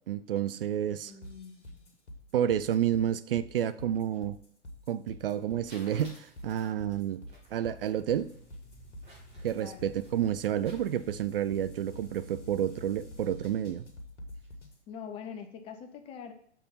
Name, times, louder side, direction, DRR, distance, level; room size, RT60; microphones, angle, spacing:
voice 1, 0.1-1.1 2.3-4.4 4.9-7.2 7.5-8.3 9.4-13.9, right 10 dB, 50° right, 0.4 m, -30 dB
voice 2, 1.0-1.9 9.5-9.9 14.9-16.3, left 7 dB, 15° left, 0.5 m, -44 dB
sound 1, 1.2-14.8, equal, 75° left, 1.9 m, -47 dB
sound 2, 5.3-11.3, right 1 dB, 15° right, 3.1 m, -56 dB
6.7 x 4.6 x 5.6 m
figure-of-eight pair, 105°, 36 cm